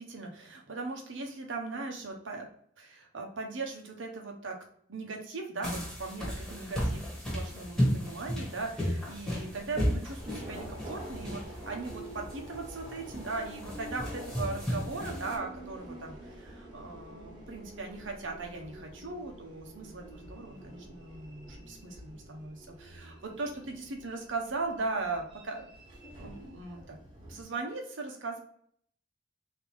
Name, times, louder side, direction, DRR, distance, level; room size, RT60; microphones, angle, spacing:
voice 1, 0.0-2.5 2.8-4.6 4.9-25.7 26.1-27.0 27.3-28.4, right 3 dB, 90° right, 2 dB, 0.9 m, -39 dB
sound 1, 5.6-15.4, equal, ahead, 1.1 m, -34 dB
sound 2, 6.7-13.2, left 1 dB, 30° left, 0.7 m, -52 dB
Subway metro underground, 10.2-27.4, right 1 dB, 25° right, 1.2 m, -47 dB
3.5 x 2.9 x 3.4 m, 0.64 s
head